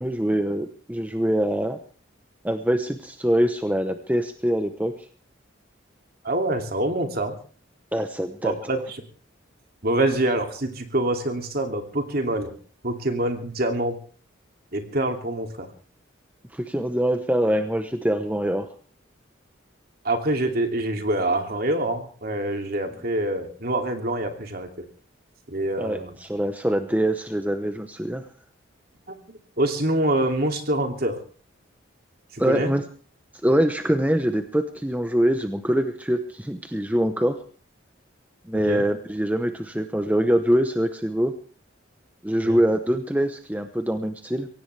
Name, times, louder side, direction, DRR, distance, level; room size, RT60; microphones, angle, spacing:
voice 1, 0.0-1.8 2.4-4.9 7.9-8.5 16.5-18.7 25.8-28.2 32.4-32.8 33.4-37.4 38.5-41.3 42.2-44.5, equal, 10° right, 7 dB, 1.0 m, -24 dB
voice 2, 6.2-7.3 8.4-9.0 9.8-12.5 12.8-14.0 14.7-15.7 20.0-24.8 25.5-26.1 29.6-31.2 32.3-32.8 38.5-38.8 42.4-42.6, right 1 dB, 50° right, 4 dB, 2.7 m, -25 dB
23.5 x 17.5 x 3.4 m, 0.41 s
head